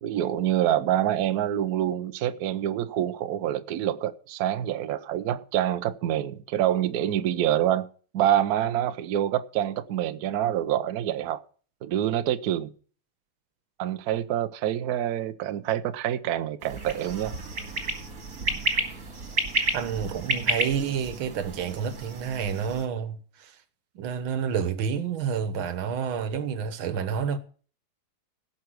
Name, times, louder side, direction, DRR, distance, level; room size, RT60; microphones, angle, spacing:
voice 1, 0.0-7.9 8.1-11.4 11.8-12.7 13.8-17.3, right 11 dB, 60° right, 1.1 m, -26 dB
sound 1, 16.6-22.8, right 2 dB, 45° right, 2.5 m, -31 dB
voice 2, 19.7-23.6 24.0-27.4, right 7 dB, 90° right, 1.9 m, -29 dB
17.0 x 5.9 x 6.1 m
omnidirectional pair, 2.1 m